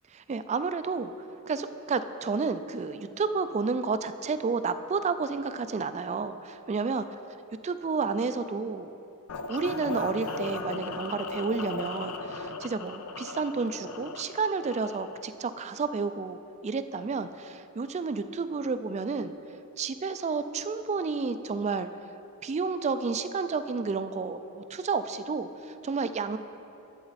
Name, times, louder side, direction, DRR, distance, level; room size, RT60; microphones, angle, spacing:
voice 1, 0.1-1.1 1.5-7.1 7.6-9.0 9.5-19.3 19.8-21.9 22.4-26.4, right 4 dB, 30° right, 11 dB, 0.3 m, -31 dB
sound 1, 9.3-15.2, left 3 dB, 75° left, 0.5 m, -37 dB
11.0 x 7.8 x 4.1 m, 2.9 s
head